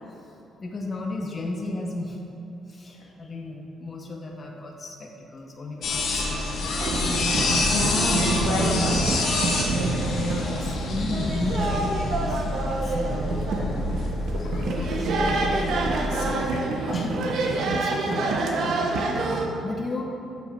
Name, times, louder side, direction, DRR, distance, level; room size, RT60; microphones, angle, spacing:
voice 1, 0.6-2.2 2.7-6.8 10.1-13.9 14.4-15.6 16.9-17.2 17.7-18.3 19.6-20.0, left 2 dB, 35° left, 0 dB, 0.8 m, -34 dB
sound 1, 5.8-16.2, left 3 dB, 70° left, 1.1 m, -28 dB
sound 2, 6.8-19.5, right 2 dB, 70° right, 0.8 m, -27 dB
voice 2, 7.6-9.3 16.1-16.7, left 2 dB, 90° left, -2 dB, 1.3 m, -29 dB
7.5 x 5.7 x 4.4 m, 2.8 s
cardioid pair, 90°, 0 cm